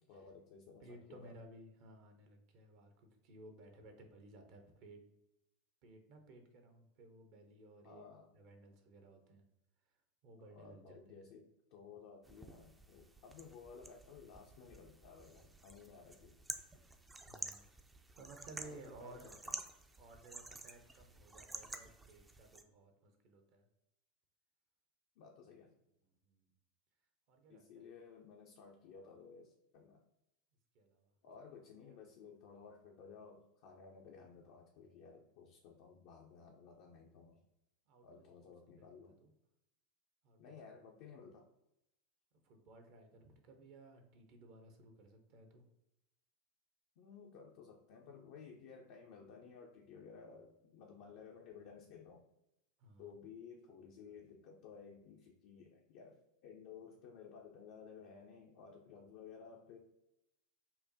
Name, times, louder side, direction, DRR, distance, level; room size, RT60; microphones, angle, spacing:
voice 1, 0.1-1.3 7.8-8.3 10.5-16.4 18.6-19.6 25.2-25.7 27.5-30.0 31.2-37.4 38.0-39.2 40.4-41.5 47.0-52.3 53.0-59.8, left 6 dB, 55° left, 0 dB, 0.4 m, -56 dB
voice 2, 0.8-5.0 5.8-8.1 8.3-9.4 10.2-11.3 17.2-19.4 20.0-23.6 26.2-26.5 27.3-27.9 30.7-31.1 31.5-31.6 31.9-32.0 37.9-39.3 40.2-40.8 42.4-45.6 52.8-53.1, right 2 dB, 50° right, 5 dB, 0.7 m, -58 dB
sound 1, 12.2-22.6, right 2 dB, 10° right, 0.4 m, -50 dB
5.6 x 2.1 x 2.7 m, 0.88 s
figure-of-eight pair, 85°, 0 cm